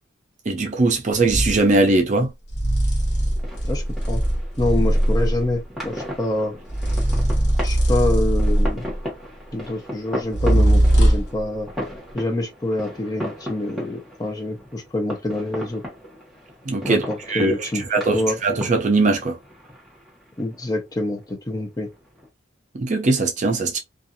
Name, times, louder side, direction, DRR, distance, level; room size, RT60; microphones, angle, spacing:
voice 1, 0.5-2.3 16.7-19.4 22.7-23.8, right 3 dB, 40° right, 0.5 m, -20 dB
sound 1, 1.3-1.6 2.5-5.5 6.7-9.0 10.3-11.4, right 1 dB, 60° left, 0.9 m, -19 dB
sound 2, 3.0-22.3, equal, ahead, 1.2 m, -37 dB
voice 2, 3.6-4.2 4.6-6.5 7.6-8.9 9.5-11.7 12.1-15.8 16.8-17.8 18.1-18.4 20.4-21.9, left 1 dB, 20° left, 0.6 m, -26 dB
2.6 x 2.3 x 2.6 m
head